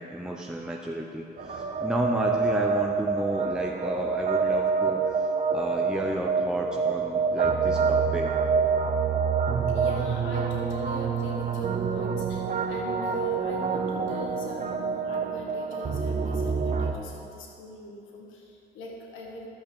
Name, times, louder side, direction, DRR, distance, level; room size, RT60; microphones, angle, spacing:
voice 1, 0.0-8.3, equal, 5° right, -1 dB, 0.8 m, -32 dB
sound 1, 1.4-16.9, right 5 dB, 40° right, 1.0 m, -27 dB
voice 2, 9.7-19.5, left 1 dB, 85° left, -1 dB, 1.5 m, -40 dB
12.0 x 6.4 x 7.1 m, 2.5 s
cardioid pair, 90°, 20 cm